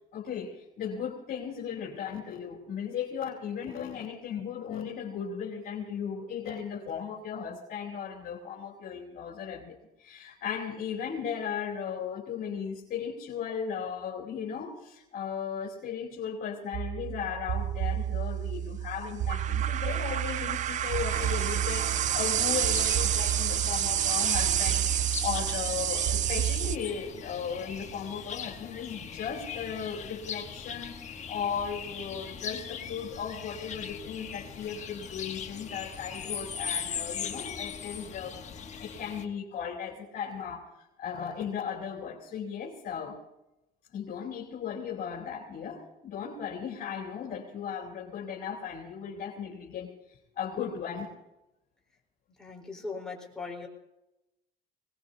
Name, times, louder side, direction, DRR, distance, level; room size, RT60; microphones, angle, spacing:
voice 1, 0.1-31.0 31.3-38.4 38.8-43.2 43.9-51.1, left 7 dB, 60° left, -3 dB, 3.0 m, -36 dB
sound 1, 16.7-26.8, right 10 dB, 45° right, 0.4 m, -28 dB
sound 2, 21.1-39.3, left 7 dB, 45° left, 1.3 m, -40 dB
voice 2, 52.4-53.7, left 4 dB, 5° left, -2 dB, 4.0 m, -39 dB
22.5 x 19.0 x 2.7 m, 0.92 s
cardioid pair, 110°, 17 cm